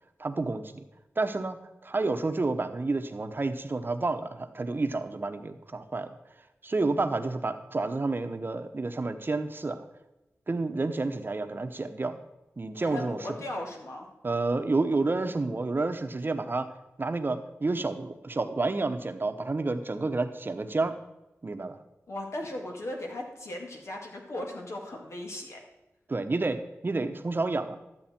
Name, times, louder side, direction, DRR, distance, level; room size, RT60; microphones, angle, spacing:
voice 1, 0.2-0.8 1.2-6.1 6.6-9.9 10.5-12.2 12.6-13.2 14.2-16.7 17.0-20.9 21.4-21.8 26.1-26.6 26.8-27.8, right 3 dB, 45° right, 8 dB, 1.0 m, -30 dB
voice 2, 12.8-14.1 22.1-25.6, left 1 dB, 65° left, 1 dB, 2.2 m, -37 dB
12.5 x 8.1 x 4.4 m, 0.99 s
cardioid pair, 60°, 5 cm